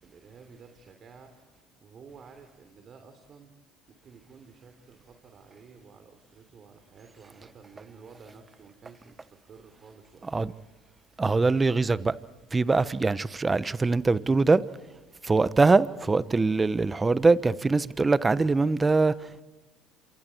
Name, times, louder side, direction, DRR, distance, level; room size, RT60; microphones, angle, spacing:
voice 1, 0.0-1.3 1.8-3.5 4.0-10.4, right 5 dB, 45° right, 3.5 m, -51 dB
voice 2, 11.2-12.2 12.5-14.6 15.2-19.4, right 3 dB, 20° right, 1.1 m, -23 dB
29.5 x 27.5 x 4.6 m
hypercardioid pair, 75°, 0 cm